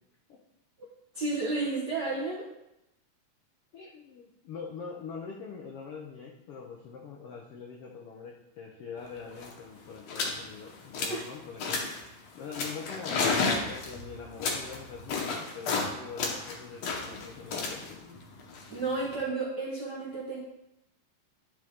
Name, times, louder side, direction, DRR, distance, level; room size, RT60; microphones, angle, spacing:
voice 1, 1.1-2.5 11.1-11.2 18.7-20.4, right 3 dB, 65° right, -6 dB, 1.0 m, -32 dB
voice 2, 3.7-13.4 13.6-18.0, left 5 dB, 85° left, 0 dB, 1.2 m, -44 dB
sound 1, 9.0-9.1 9.3-9.6 10.1-10.4 10.7-11.3 11.6-12.0 12.5-15.9 16.2-19.2, left 4 dB, 60° left, 2.0 m, -32 dB
10.5 x 5.4 x 3.6 m, 0.87 s
omnidirectional pair, 3.7 m